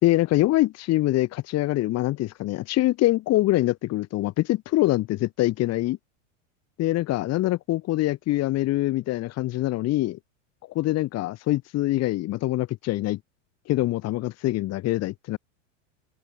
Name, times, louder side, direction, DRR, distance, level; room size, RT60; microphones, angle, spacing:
voice 1, 0.0-6.0 6.8-10.2 10.8-13.2 13.7-15.4, left 16 dB, 40° left, 3.6 m, -24 dB
open air
supercardioid pair, 125°, 38 cm